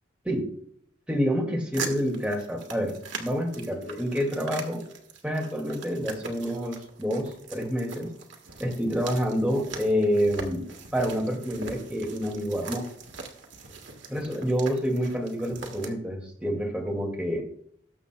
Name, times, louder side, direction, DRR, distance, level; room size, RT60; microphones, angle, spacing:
voice 1, 1.1-4.8 5.2-8.1 8.6-10.7 10.9-12.8 14.1-17.4, equal, 5° right, 0 dB, 2.1 m, -28 dB
sound 1, 1.7-15.9, right 4 dB, 75° right, 1.5 m, -41 dB
19.0 x 7.0 x 2.3 m, 0.67 s
head